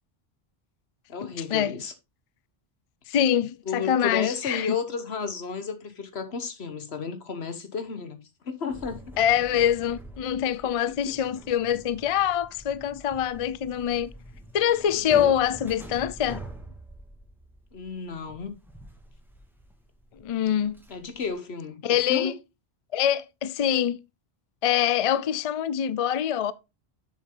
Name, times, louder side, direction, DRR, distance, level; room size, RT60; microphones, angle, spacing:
voice 1, 1.1-1.9 3.7-9.2 10.6-11.2 14.8-15.4 17.7-18.5 20.9-22.3, left 5 dB, 90° left, 1.5 m, -33 dB
voice 2, 3.1-4.8 9.2-14.1 14.5-16.4 20.2-20.8 21.8-22.3 22.9-24.0 24.6-26.5, left 10 dB, 45° left, 0.4 m, -24 dB
sound 1, 8.7-21.3, right 1 dB, ahead, 1.9 m, -46 dB
7.5 x 6.7 x 3.8 m
omnidirectional pair, 1.0 m